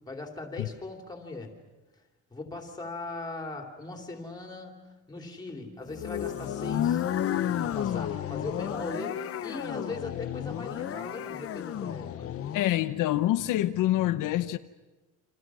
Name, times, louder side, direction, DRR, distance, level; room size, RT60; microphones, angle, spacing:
voice 1, 0.1-1.5 2.3-7.0 7.6-12.3, left 2 dB, 15° left, 3.2 m, -39 dB
sound 1, 5.9-12.7, left 10 dB, 45° left, 0.9 m, -32 dB
voice 2, 12.5-14.6, left 14 dB, 80° left, 0.9 m, -26 dB
29.0 x 27.0 x 6.3 m
cardioid pair, 165°, 31 cm